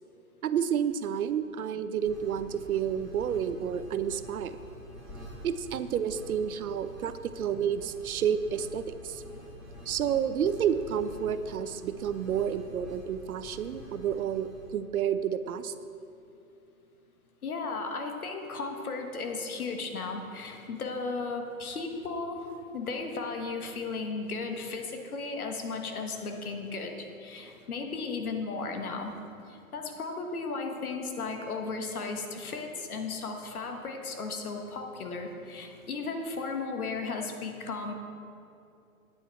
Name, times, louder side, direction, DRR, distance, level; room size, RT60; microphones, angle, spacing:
voice 1, 0.4-4.6 5.4-9.2 9.9-15.7 21.7-21.8, right 8 dB, 80° right, 13 dB, 0.7 m, -30 dB
sound 1, 2.0-14.7, left 1 dB, ahead, 1.9 m, -47 dB
voice 2, 17.4-29.2 29.5-37.9, left 4 dB, 80° left, 4 dB, 1.5 m, -35 dB
9.1 x 8.5 x 4.4 m, 2.6 s
hypercardioid pair, 140°, 43 cm